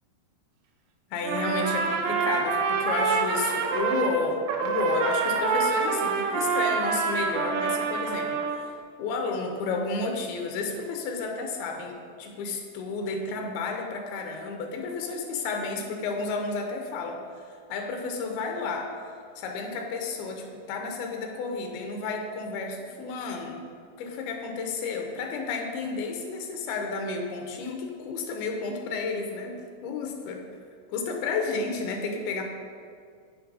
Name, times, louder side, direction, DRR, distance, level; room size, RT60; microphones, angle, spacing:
voice 1, 1.1-8.7 9.0-17.2 17.7-18.9 19.4-23.6 24.0-30.4 30.9-32.4, left 4 dB, 85° left, 3 dB, 2.7 m, -31 dB
Trumpet, 1.2-4.2 4.5-8.6, right 5 dB, 80° right, 2.1 m, -26 dB
8.4 x 6.0 x 3.9 m, 2.1 s
omnidirectional pair, 4.3 m